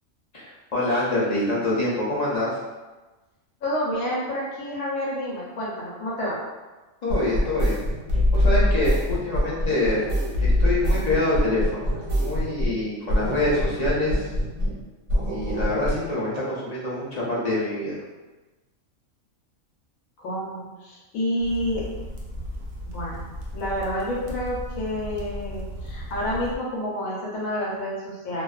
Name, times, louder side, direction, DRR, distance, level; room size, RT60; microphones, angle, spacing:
voice 1, 0.3-2.6 7.0-7.8 8.3-10.0 10.4-11.9 12.2-14.3 15.3-17.9, left 1 dB, 45° left, -7 dB, 0.5 m, -25 dB
voice 2, 3.6-6.4 20.2-21.8 22.8-28.4, equal, 85° left, -5 dB, 1.1 m, -29 dB
sound 1, 7.1-12.8 13.1-14.8 15.1-16.0, left 1 dB, 85° right, 1.2 m, -24 dB
sound 2, 21.4-26.6, equal, 70° right, 0.5 m, -36 dB
2.5 x 2.2 x 2.3 m, 1.2 s
omnidirectional pair, 1.4 m